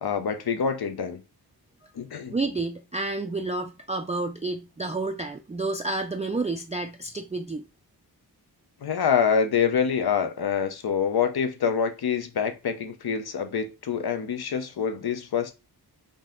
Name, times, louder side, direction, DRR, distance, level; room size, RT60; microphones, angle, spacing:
voice 1, 0.0-1.2 1.9-2.3 8.8-15.5, left 7 dB, 65° left, 0.7 m, -26 dB
voice 2, 2.3-7.7, right 3 dB, 20° right, 0.3 m, -30 dB
3.9 x 2.7 x 3.7 m
wide cardioid pair, 95°, 40 cm